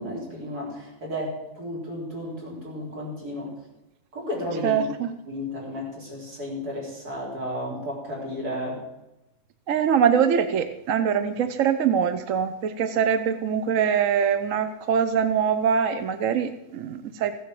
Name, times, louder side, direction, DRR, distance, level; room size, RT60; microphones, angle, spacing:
voice 1, 0.0-3.5 4.1-4.8 5.3-8.8, left 1 dB, 85° right, -3 dB, 4.6 m, -33 dB
voice 2, 4.6-5.1 9.7-17.3, right 7 dB, 65° right, 10 dB, 1.1 m, -23 dB
15.5 x 8.1 x 7.7 m, 0.94 s
omnidirectional pair, 1.6 m